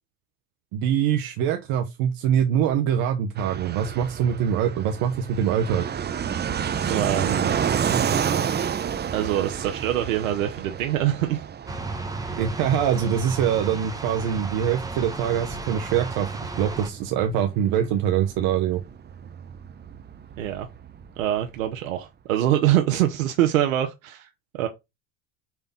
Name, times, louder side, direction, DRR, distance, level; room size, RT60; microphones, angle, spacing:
voice 1, 0.7-5.9 12.4-16.3 16.6-18.8, right 9 dB, 65° right, 1.0 m, -24 dB
Fixed-wing aircraft airplane, 3.4-21.7, right 8 dB, 25° right, 0.7 m, -31 dB
voice 2, 6.9-7.6 9.1-11.4 20.4-20.7 21.2-24.3 24.5-24.7, right 12 dB, 90° right, 0.9 m, -24 dB
sound 1, 11.7-16.9, right 3 dB, 10° right, 1.2 m, -34 dB
5.9 x 3.5 x 5.3 m
hypercardioid pair, 85°, 39 cm